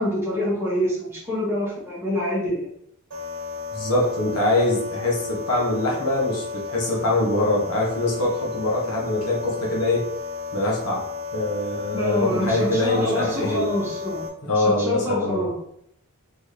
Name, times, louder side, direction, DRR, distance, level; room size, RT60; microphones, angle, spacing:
voice 1, 0.0-2.7 11.9-14.3 14.5-15.5, left 1 dB, 10° right, -7 dB, 1.6 m, -26 dB
sound 1, 3.1-14.3, left 5 dB, 55° right, 1.2 m, -33 dB
voice 2, 3.7-10.0 10.5-11.1 11.3-13.7 14.5-15.5, left 2 dB, 80° left, -3 dB, 1.4 m, -23 dB
3.9 x 3.9 x 3.3 m, 0.71 s
head